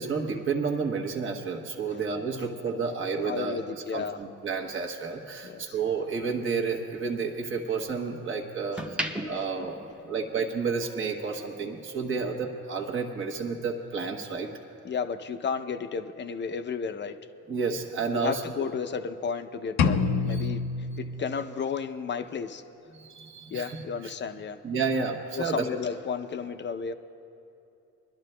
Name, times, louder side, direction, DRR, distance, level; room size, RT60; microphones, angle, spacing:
voice 1, 0.0-3.6 3.9-9.0 9.2-9.8 10.0-14.5 17.5-18.7 20.4-20.5 22.9-23.8 24.6-25.7, right 5 dB, 40° right, 0 dB, 1.1 m, -31 dB
voice 2, 3.2-4.2 5.4-5.8 8.7-8.8 9.2-9.4 12.2-12.4 14.8-17.2 18.1-20.6 21.0-22.6 23.5-24.6 25.3-26.9, left 6 dB, 40° left, 9 dB, 0.6 m, -33 dB
sound 1, 3.9-6.3 6.7-8.1 8.5-10.7 11.0-11.2, equal, 5° right, 0.8 m, -38 dB
sound 2, 19.8-21.7, left 5 dB, 80° left, 0.6 m, -27 dB
25.5 x 12.0 x 2.2 m, 2.7 s
cardioid pair, 90°, 30 cm